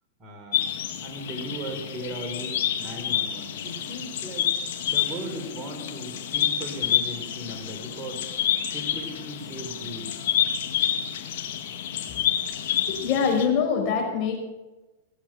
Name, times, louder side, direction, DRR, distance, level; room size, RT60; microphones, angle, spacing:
voice 1, 0.2-0.7 1.0-4.5 4.9-8.2 8.7-10.3, right 1 dB, 25° right, 2 dB, 3.4 m, -37 dB
sound 1, 0.5-13.4, left 10 dB, 65° left, 2.0 m, -28 dB
voice 2, 12.9-14.4, left 6 dB, 45° left, 1 dB, 5.4 m, -24 dB
18.0 x 8.1 x 7.6 m, 1.1 s
hypercardioid pair, 120°, 0 cm